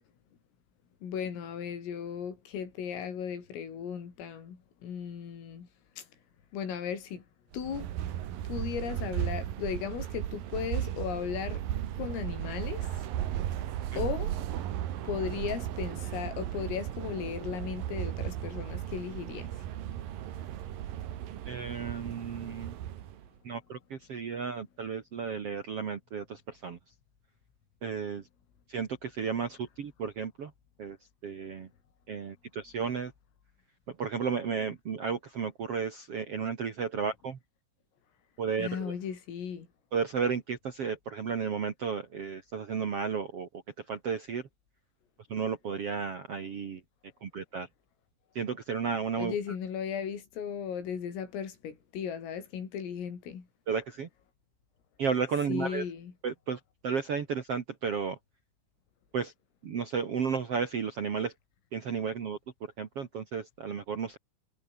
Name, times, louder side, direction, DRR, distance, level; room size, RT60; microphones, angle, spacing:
voice 1, 1.0-5.7 6.0-6.1 6.5-7.2 7.5-7.9 8.5-11.6 12.0-13.3 14.0-14.3 15.0-19.7 38.6-39.7 49.2-53.5 55.5-56.1, left 7 dB, 80° left, 7.2 m, -36 dB
sound 1, 7.5-23.3, right 12 dB, 65° right, 2.5 m, -36 dB
voice 2, 21.4-22.7 23.4-26.8 27.8-28.2 28.7-30.5 30.8-31.0 31.2-31.7 32.1-33.1 33.9-37.4 38.4-38.9 39.9-43.5 43.9-44.5 45.3-46.8 47.2-47.7 48.3-49.3 53.7-54.1 55.0-55.8 56.2-58.2 59.1-59.3 59.6-61.3 61.7-62.4 62.8-64.2, right 6 dB, 85° right, 1.3 m, -33 dB
omnidirectional pair, 5.9 m